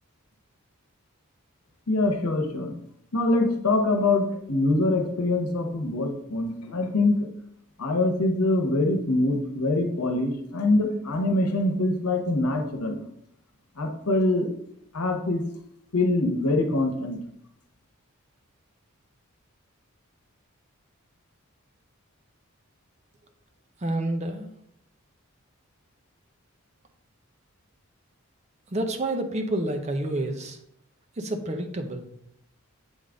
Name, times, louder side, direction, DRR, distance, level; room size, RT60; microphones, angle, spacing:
voice 1, 1.9-2.7 3.1-7.2 7.8-13.0 13.8-14.5 14.9-15.4 15.9-17.2, left 2 dB, 85° left, 3 dB, 1.0 m, -24 dB
voice 2, 23.8-24.5 28.7-30.6 31.2-32.1, right 1 dB, 30° right, 6 dB, 0.6 m, -29 dB
7.8 x 3.5 x 3.8 m, 0.75 s
head